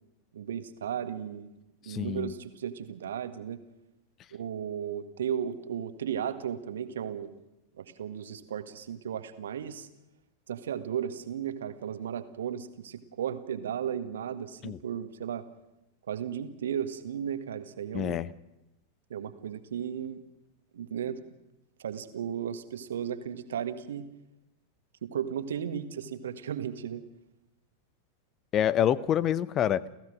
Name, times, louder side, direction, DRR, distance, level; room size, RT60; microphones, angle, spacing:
voice 1, 0.3-1.5 1.8-3.6 4.3-7.3 7.8-9.9 10.5-15.4 16.1-18.2 19.1-20.2 20.7-21.2 21.8-24.1 25.0-27.0, right 9 dB, 65° right, 11 dB, 1.6 m, -35 dB
voice 2, 1.9-2.3 14.6-14.8 17.9-18.3 28.5-29.8, left 10 dB, 30° left, 21 dB, 0.7 m, -26 dB
30.0 x 15.5 x 6.4 m, 0.91 s
figure-of-eight pair, 90°, 0 cm